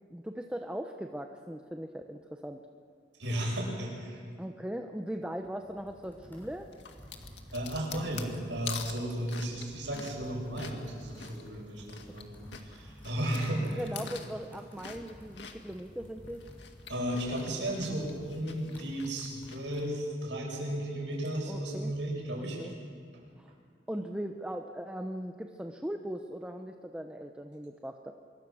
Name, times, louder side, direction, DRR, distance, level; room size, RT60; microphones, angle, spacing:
voice 1, 0.1-2.6 4.4-6.7 13.8-16.4 21.5-21.9 22.4-22.7 23.4-23.5 23.9-28.1, equal, 5° right, 4 dB, 0.9 m, -39 dB
voice 2, 3.2-4.2 7.5-12.3 12.6-13.8 16.9-22.7 23.1-23.3, right 1 dB, 85° right, -1 dB, 7.9 m, -34 dB
Computer keyboard, 5.4-19.9, equal, 10° left, 6.9 m, -53 dB
sound 1, 6.7-12.2 12.5-15.8 16.2-19.8, left 6 dB, 80° left, 2.0 m, -45 dB
25.0 x 23.5 x 6.4 m, 2.1 s
head